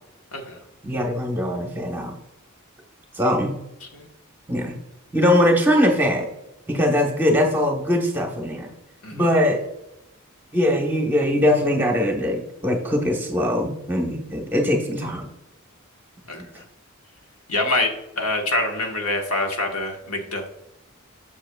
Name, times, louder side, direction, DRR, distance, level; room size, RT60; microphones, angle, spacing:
voice 1, 0.8-2.2 3.1-3.6 4.5-4.8 5.1-6.3 6.7-8.7 9.1-9.6 10.5-15.3, left 1 dB, 10° right, 1 dB, 1.1 m, -21 dB
voice 2, 17.5-17.9 18.2-20.5, left 2 dB, 85° left, 2 dB, 1.3 m, -25 dB
7.5 x 7.3 x 2.3 m, 0.89 s
head